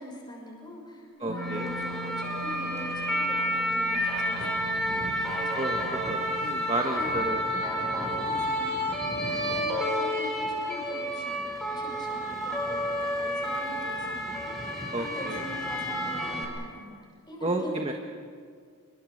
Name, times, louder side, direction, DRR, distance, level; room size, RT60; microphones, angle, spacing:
voice 1, 0.0-6.6 6.9-7.2 7.7-18.0, left 1 dB, 20° left, -2 dB, 6.1 m, -43 dB
voice 2, 1.2-1.7 5.5-7.4 14.9-15.4 17.4-18.0, right 2 dB, 25° right, 3 dB, 1.3 m, -31 dB
bec bells pealing cropped, 1.3-6.7, equal, 70° right, 4.7 m, -42 dB
sound 1, 1.4-16.4, equal, ahead, 5.4 m, -30 dB
28.0 x 23.5 x 6.5 m, 2.1 s
head